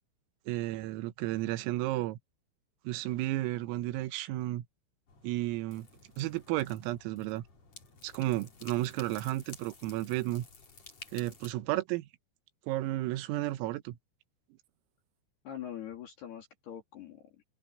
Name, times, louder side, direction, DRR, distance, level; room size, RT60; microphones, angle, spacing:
voice 1, 0.5-2.2 2.9-4.7 5.2-5.9 6.2-7.4 8.0-10.5 11.1-12.1 12.7-14.0, right 16 dB, 85° right, 3.8 m, -33 dB
sound 1, 5.1-11.5, left 4 dB, 35° left, 4.7 m, -53 dB
voice 2, 15.4-17.4, left 10 dB, 55° left, 4.2 m, -43 dB
open air
omnidirectional pair, 5.9 m